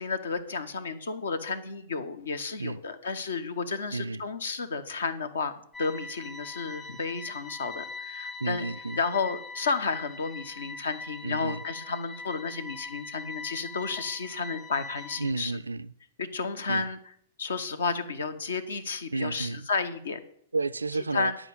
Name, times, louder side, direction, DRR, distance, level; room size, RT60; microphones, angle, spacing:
voice 1, 0.0-8.7 9.0-15.5 16.2-17.0 17.4-20.2 21.1-21.4, left 4 dB, 65° left, 1.0 m, -32 dB
voice 2, 3.9-4.2 8.4-9.0 11.2-11.6 15.2-15.9 16.7-16.9 19.1-19.7 20.5-21.3, right 3 dB, 80° right, 0.3 m, -31 dB
sound 1, 5.7-15.3, left 3 dB, 10° left, 0.8 m, -42 dB
10.0 x 5.0 x 8.2 m
figure-of-eight pair, 100°, 0 cm